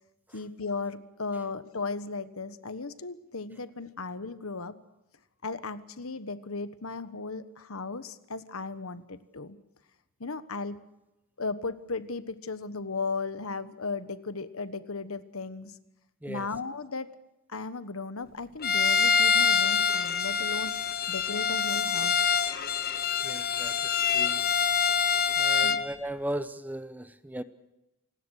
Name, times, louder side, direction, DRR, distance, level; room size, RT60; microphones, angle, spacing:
voice 1, 0.3-4.7 5.4-9.6 10.2-10.8 11.4-15.7 16.3-17.1 17.5-20.7 21.1-22.4 25.6-25.8, left 3 dB, 75° left, 13 dB, 1.3 m, -36 dB
Bowed string instrument, 18.6-25.9, left 6 dB, 45° left, 1.3 m, -25 dB
voice 2, 23.2-23.7 24.1-24.4 25.4-27.4, right 1 dB, 5° right, 13 dB, 0.8 m, -36 dB
27.5 x 19.0 x 6.5 m, 0.94 s
head